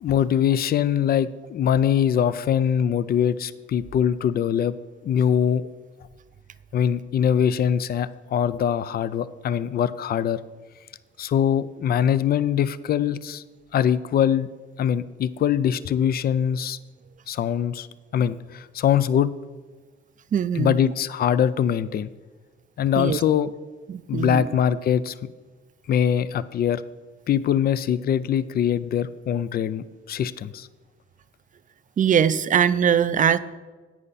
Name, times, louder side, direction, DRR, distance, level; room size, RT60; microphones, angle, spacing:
voice 1, 0.0-4.7 5.0-5.6 6.7-10.4 11.2-13.4 13.7-14.5 14.8-16.8 17.3-17.9 18.1-19.3 20.6-22.1 22.8-23.5 24.1-25.1 25.9-26.8 27.3-30.7, left 9 dB, 50° left, 16 dB, 0.5 m, -22 dB
voice 2, 20.3-20.8 23.0-23.2 23.9-24.5 32.0-33.4, right 8 dB, 40° right, 15 dB, 0.5 m, -21 dB
10.5 x 8.5 x 4.1 m, 1.3 s
cardioid pair, 90°, 20 cm